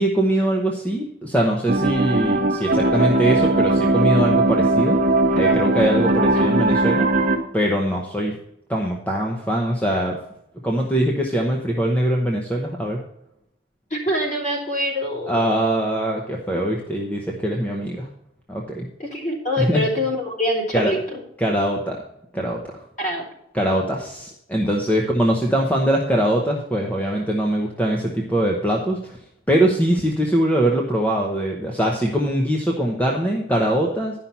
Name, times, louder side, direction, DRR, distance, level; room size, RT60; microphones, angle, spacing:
voice 1, 0.0-5.0 5.4-7.1 7.5-8.4 8.7-10.2 10.6-13.0 15.3-18.1 18.5-18.9 19.6-19.8 20.7-20.9 21.4-22.0 22.3-22.6 23.5-29.2 29.5-34.1, right 1 dB, 5° left, -1 dB, 0.9 m, -22 dB
sound 1, 1.7-7.4, right 2 dB, 40° right, 1.1 m, -19 dB
voice 2, 13.9-15.4 19.0-21.2 23.0-23.2, equal, 35° left, -2 dB, 3.0 m, -24 dB
11.0 x 5.7 x 5.6 m, 0.78 s
head